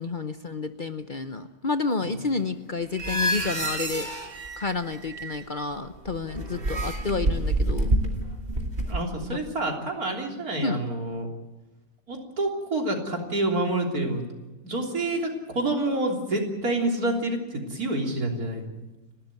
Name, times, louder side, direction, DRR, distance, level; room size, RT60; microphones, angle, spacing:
voice 1, 0.0-4.1 4.6-8.0 9.3-9.4 10.6-10.8, left 4 dB, 40° left, 9 dB, 0.9 m, -30 dB
sound 1, 3.0-5.6 5.9-9.1, right 1 dB, 40° right, 2.7 m, -28 dB
voice 2, 8.9-11.3 12.1-14.3 14.6-18.7, right 2 dB, 80° right, 2 dB, 4.0 m, -28 dB
30.0 x 13.0 x 9.3 m, 1.1 s
omnidirectional pair, 1.5 m